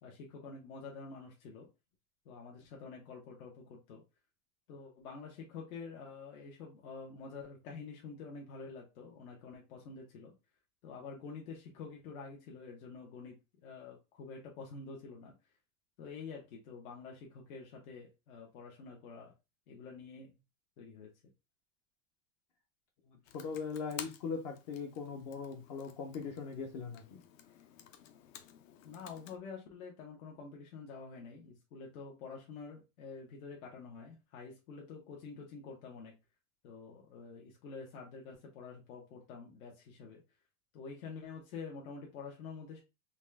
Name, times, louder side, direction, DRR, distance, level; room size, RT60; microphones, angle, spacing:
voice 1, 0.0-1.7 2.2-4.0 4.7-10.3 10.8-15.3 16.0-19.3 19.7-20.4 20.8-21.1 28.8-36.1 36.6-40.2 40.7-42.8, left 5 dB, 85° left, 1.3 m, -48 dB
voice 2, 23.1-27.2, left 5 dB, 30° left, 0.4 m, -40 dB
Computer keyboard, 23.2-29.4, left 10 dB, 70° left, 0.7 m, -53 dB
4.1 x 2.5 x 3.4 m
supercardioid pair, 170°, 42 cm